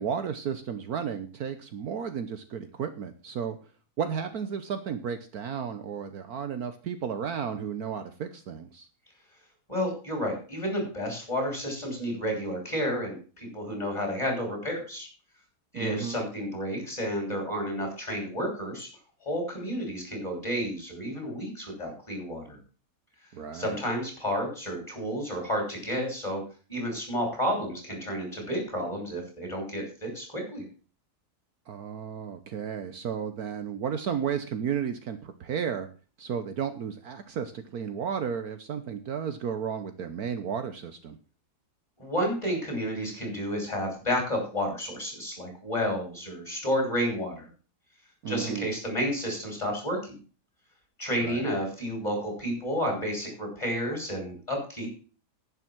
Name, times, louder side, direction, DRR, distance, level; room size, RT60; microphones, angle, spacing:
voice 1, 0.0-3.6 4.0-8.9 15.7-16.2 23.3-23.8 31.7-35.9 36.2-41.2 48.2-48.7 51.2-51.5, right 7 dB, 65° right, 9 dB, 1.4 m, -33 dB
voice 2, 9.7-15.1 15.7-18.9 19.2-22.6 23.5-26.4 26.7-30.6 42.0-47.5 48.3-50.2 51.0-54.9, equal, 15° left, 1 dB, 6.8 m, -31 dB
11.0 x 9.7 x 6.1 m, 0.38 s
omnidirectional pair, 1.8 m